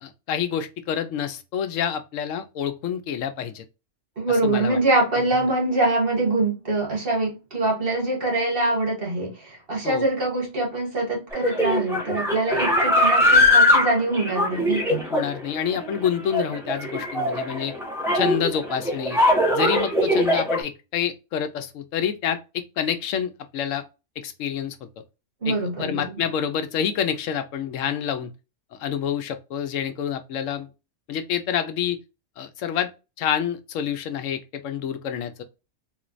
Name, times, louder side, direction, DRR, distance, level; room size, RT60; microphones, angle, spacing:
voice 1, 0.0-3.6 4.3-4.8 9.8-10.0 15.1-17.7 18.1-19.2 19.5-23.8 24.2-24.8 25.4-28.3 28.7-30.7 31.1-32.0 32.4-32.9 33.2-35.4, left 8 dB, 90° left, 1.0 m, -28 dB
voice 2, 4.2-15.0 25.4-26.2, right 2 dB, 45° right, 1.7 m, -24 dB
sound 1, 11.3-20.6, left 1 dB, ahead, 0.9 m, -21 dB
3.7 x 3.1 x 2.4 m
omnidirectional pair, 1.3 m